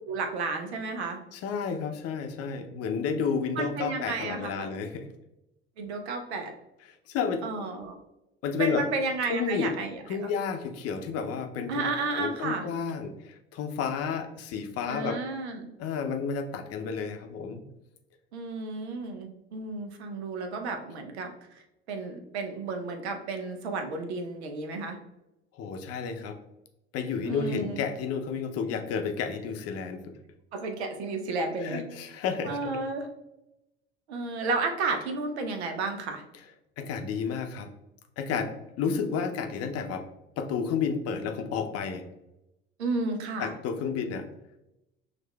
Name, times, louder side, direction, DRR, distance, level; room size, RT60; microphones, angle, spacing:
voice 1, 0.1-1.2 3.6-4.7 5.8-6.5 7.4-8.0 8.6-10.3 11.7-12.7 14.9-15.7 18.3-25.0 27.2-27.8 30.5-31.8 32.4-33.1 34.1-36.2 42.8-43.5, right 3 dB, 80° right, 5 dB, 0.6 m, -32 dB
voice 2, 1.3-5.1 7.1-7.4 8.4-8.8 9.3-9.7 10.1-11.8 12.1-15.2 15.8-17.6 25.5-26.4 26.9-30.2 31.6-32.7 36.8-37.7 38.2-38.5 38.8-40.0 40.4-42.0 43.4-44.3, left 6 dB, 50° left, 5 dB, 0.6 m, -31 dB
6.0 x 2.4 x 2.2 m, 0.92 s
hypercardioid pair, 65°, 32 cm